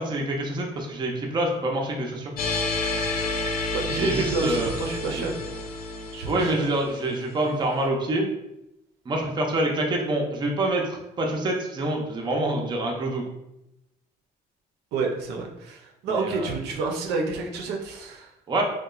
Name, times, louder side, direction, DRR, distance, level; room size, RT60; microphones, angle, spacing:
voice 1, 0.0-2.3 4.0-4.7 6.3-8.3 9.1-13.2 16.1-16.5 18.5-18.6, right 1 dB, 25° right, 0 dB, 0.5 m, -26 dB
sound 1, 2.4-7.5, left 2 dB, 60° left, 0.4 m, -30 dB
voice 2, 3.7-5.4 6.1-6.7 14.9-18.3, right 4 dB, 80° right, 0 dB, 0.5 m, -29 dB
2.9 x 2.2 x 2.3 m, 0.88 s
cardioid pair, 110°, 17 cm